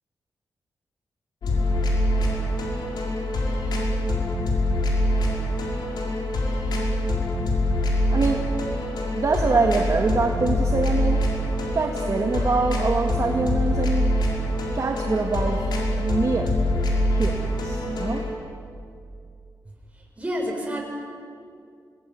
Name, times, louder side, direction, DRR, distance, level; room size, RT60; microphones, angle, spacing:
sound 1, 1.4-18.3, left 1 dB, 85° left, 5.5 m, -24 dB
voice 1, 8.1-8.4 9.1-11.2 11.7-14.1 14.7-15.6 16.0-16.6 17.1-18.2, right 4 dB, 45° right, 2 dB, 1.9 m, -24 dB
voice 2, 20.2-20.9, equal, 20° right, -1 dB, 7.3 m, -28 dB
27.0 x 20.0 x 9.5 m, 2.3 s
wide cardioid pair, 105°, 7 cm